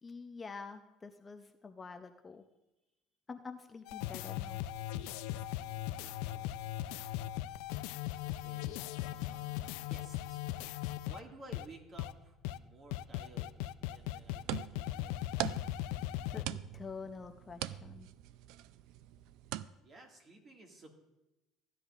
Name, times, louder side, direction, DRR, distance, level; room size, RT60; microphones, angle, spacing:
voice 1, 0.0-2.4 3.3-4.6 16.3-18.1, left 4 dB, 20° left, 6 dB, 0.5 m, -47 dB
sound 1, 3.9-11.2 11.5-11.6 12.0-12.1 12.4-12.6 12.9-16.4, left 14 dB, 85° left, 0.4 m, -38 dB
voice 2, 5.6-6.5 8.2-15.2 19.8-20.9, right 2 dB, 35° right, 2 dB, 1.9 m, -56 dB
sound 2, 14.0-19.6, right 14 dB, 75° right, 0.3 m, -43 dB
15.5 x 9.9 x 2.4 m, 0.98 s
cardioid pair, 120°, 0 cm